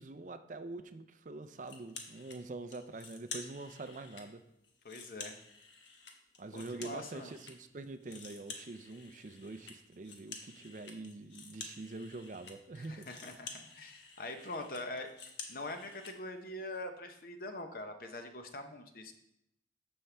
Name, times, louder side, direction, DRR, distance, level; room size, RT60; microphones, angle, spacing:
voice 1, 0.0-4.4 6.4-13.1, right 3 dB, 45° right, 10 dB, 0.5 m, -45 dB
sound 1, 1.6-2.4 2.7-4.3 4.6-7.5 7.8-16.1, left 4 dB, 80° left, 1.2 m, -50 dB
voice 2, 4.8-5.4 6.5-7.3 12.7-19.1, left 2 dB, 50° left, 6 dB, 0.9 m, -43 dB
13.0 x 5.4 x 3.4 m, 0.81 s
head